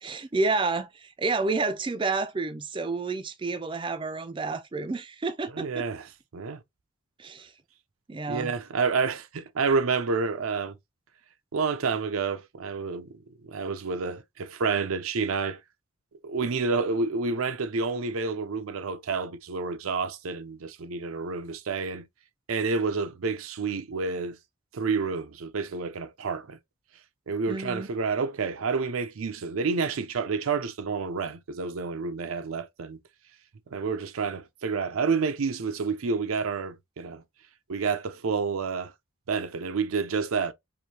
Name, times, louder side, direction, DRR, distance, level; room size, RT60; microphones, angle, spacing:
voice 1, 0.0-5.8 7.2-7.5 8.1-8.5 27.5-27.9, right 3 dB, 25° right, 0.3 m, -30 dB
voice 2, 5.5-6.1 6.3-6.6 8.3-10.8 11.5-15.6 16.2-22.0 22.5-24.4 24.7-26.6 27.3-33.0 33.7-37.2 37.7-38.9 39.3-40.5, right 4 dB, 85° right, 0.6 m, -29 dB
4.7 x 2.7 x 2.7 m
head